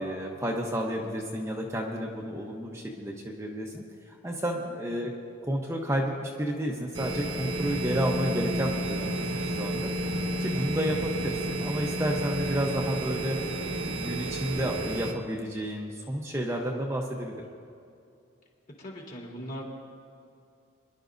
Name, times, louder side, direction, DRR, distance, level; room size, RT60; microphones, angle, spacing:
voice 1, 0.0-5.1 5.4-9.9 10.4-13.4 13.9-17.3, equal, 15° right, -1 dB, 0.9 m, -31 dB
sound 1, 6.9-15.1, right 1 dB, 65° right, 1.3 m, -31 dB
voice 2, 18.8-19.6, equal, 45° left, -3 dB, 2.9 m, -40 dB
26.0 x 11.5 x 2.6 m, 2.5 s
head